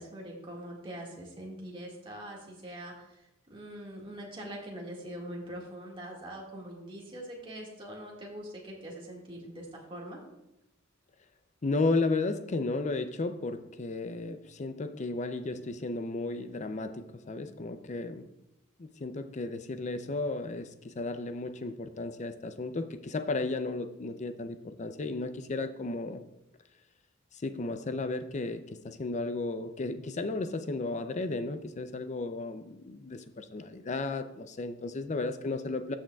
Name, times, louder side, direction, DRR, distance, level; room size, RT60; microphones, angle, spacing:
voice 1, 0.0-10.2, right 1 dB, 25° right, -2 dB, 1.9 m, -43 dB
voice 2, 11.6-18.2 18.8-26.2 27.4-36.0, left 3 dB, 35° left, 10 dB, 0.5 m, -34 dB
13.5 x 6.3 x 2.3 m, 0.89 s
head